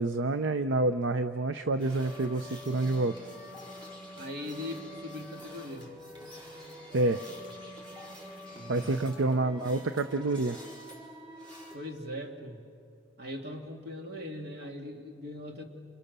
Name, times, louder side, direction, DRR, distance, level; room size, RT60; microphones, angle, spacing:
voice 1, 0.0-3.1 6.9-7.2 8.7-10.6, right 2 dB, 80° right, 10 dB, 0.7 m, -28 dB
sound 1, 1.8-11.8, left 1 dB, 25° right, 4.5 m, -46 dB
voice 2, 4.2-5.9 8.5-9.3 11.7-12.6 13.2-15.6, left 1 dB, 60° right, 2 dB, 2.5 m, -40 dB
30.0 x 27.5 x 6.8 m, 2.4 s
head